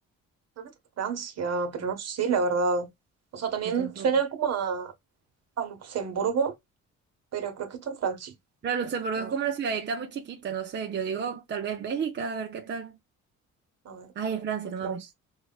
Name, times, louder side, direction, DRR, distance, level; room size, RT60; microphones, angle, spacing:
voice 1, 1.0-2.9 3.3-4.9 5.6-6.5 7.3-8.3 9.2-9.3 13.8-14.1 14.8-15.0, right 5 dB, 60° right, 1.1 m, -28 dB
voice 2, 3.6-4.1 8.6-13.0 14.2-15.0, right 6 dB, 35° right, 0.6 m, -31 dB
4.5 x 2.2 x 2.3 m
cardioid pair, 90°, 30 cm